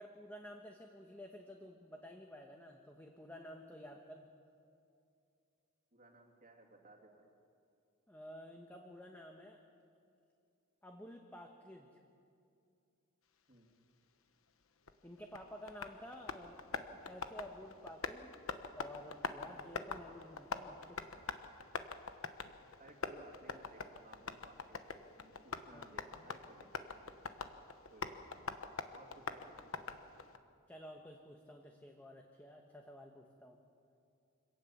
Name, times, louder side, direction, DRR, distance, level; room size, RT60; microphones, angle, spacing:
voice 1, 0.0-4.3 8.1-9.6 10.8-11.9 15.0-16.6 16.9-18.4 18.7-21.0 25.7-25.9 30.7-33.6, equal, 10° left, 2 dB, 1.2 m, -52 dB
voice 2, 5.9-7.3 13.5-13.7 22.8-27.1 27.9-28.4 28.9-29.9, right 2 dB, 40° right, 1 dB, 2.7 m, -60 dB
Tap, 14.9-30.4, left 4 dB, 80° left, 1.1 m, -45 dB
25.5 x 18.0 x 7.3 m, 2.5 s
head